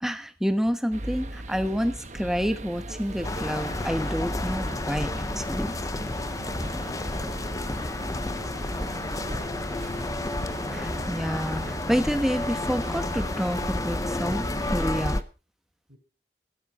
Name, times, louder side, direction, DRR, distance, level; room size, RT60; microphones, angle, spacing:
voice 1, 0.0-5.7 10.7-15.2, equal, ahead, 9 dB, 1.1 m, -28 dB
sound 1, 0.9-15.2, right 1 dB, 40° right, 1.2 m, -38 dB
sound 2, 2.9-14.7, left 4 dB, 20° right, 5.0 m, -49 dB
sound 3, 3.2-15.2, left 2 dB, 20° left, 0.7 m, -31 dB
voice 2, 6.5-7.9 8.2-10.2 15.9-16.0, equal, 65° right, -3 dB, 4.2 m, -48 dB
15.0 x 13.5 x 4.1 m, 0.34 s
head